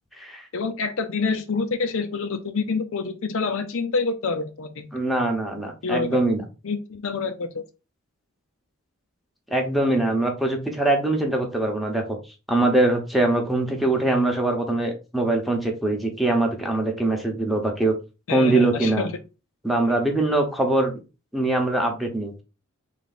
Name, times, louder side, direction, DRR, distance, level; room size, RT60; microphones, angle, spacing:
voice 1, 0.5-4.9 5.8-6.2 6.6-7.6 18.3-19.2, left 4 dB, 70° left, 0.6 m, -27 dB
voice 2, 4.9-6.4 9.5-12.2 12.5-17.9 18.3-19.1 19.6-20.9 21.3-22.3, right 2 dB, ahead, 0.9 m, -22 dB
3.6 x 3.4 x 4.1 m
head